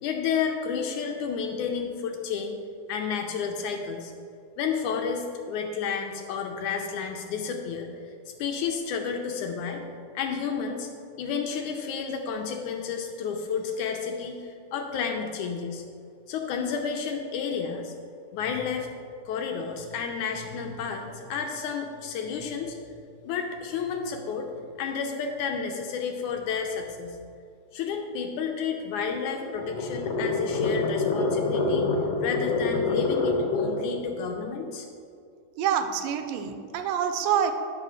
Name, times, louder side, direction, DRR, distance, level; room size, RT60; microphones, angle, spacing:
voice 1, 0.0-2.6 2.9-4.1 4.6-9.8 10.1-10.9 11.2-15.8 16.3-17.9 18.3-18.9 19.3-22.8 23.2-24.5 24.8-27.2 27.7-31.9 32.2-34.9, left 6 dB, 75° left, 3 dB, 1.9 m, -31 dB
sound 1, 29.0-34.0, left 3 dB, 60° left, 1.8 m, -27 dB
voice 2, 35.6-37.5, right 8 dB, 90° right, 7 dB, 2.3 m, -26 dB
11.0 x 4.9 x 6.1 m, 2.4 s
omnidirectional pair, 3.9 m